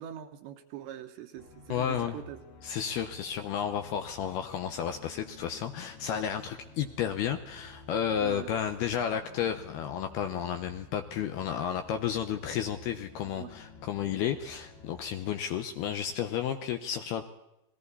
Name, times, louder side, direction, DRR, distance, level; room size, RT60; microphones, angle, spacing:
voice 1, 0.0-2.4 8.2-8.5 13.2-13.5, right 10 dB, 70° right, 6 dB, 3.4 m, -43 dB
sound 1, 1.4-15.3, left 3 dB, 60° left, 3.0 m, -52 dB
voice 2, 1.7-2.2 2.6-17.2, left 9 dB, 75° left, 7 dB, 2.5 m, -32 dB
29.5 x 21.5 x 4.1 m, 0.90 s
omnidirectional pair, 5.5 m